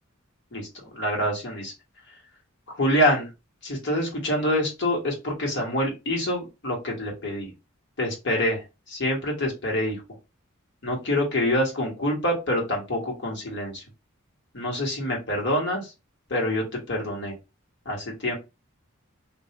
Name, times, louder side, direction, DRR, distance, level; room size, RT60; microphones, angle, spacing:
voice 1, 0.5-1.7 2.7-3.3 3.6-7.5 8.0-10.0 10.8-13.8 14.5-15.9 16.3-17.3 17.8-18.3, left 1 dB, 60° left, 0 dB, 1.5 m, -26 dB
3.3 x 2.7 x 2.9 m, 0.25 s
head